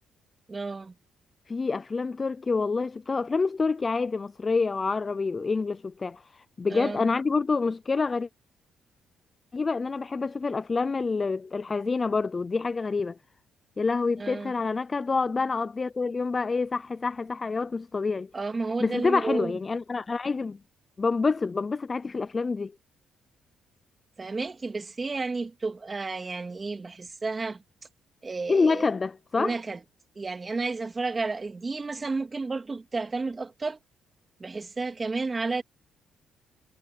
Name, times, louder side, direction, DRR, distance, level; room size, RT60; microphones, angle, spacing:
voice 1, 0.5-0.9 6.7-7.1 14.2-14.5 18.3-19.5 24.2-27.6 28.2-28.9 29.4-29.8 30.1-33.8 34.4-35.6, right 3 dB, 30° right, 2.9 m, -32 dB
voice 2, 1.5-8.3 9.5-13.2 13.8-18.3 18.8-20.6 21.0-22.7 28.5-29.6, left 4 dB, 30° left, 0.5 m, -27 dB
cardioid pair, 90°, 0 cm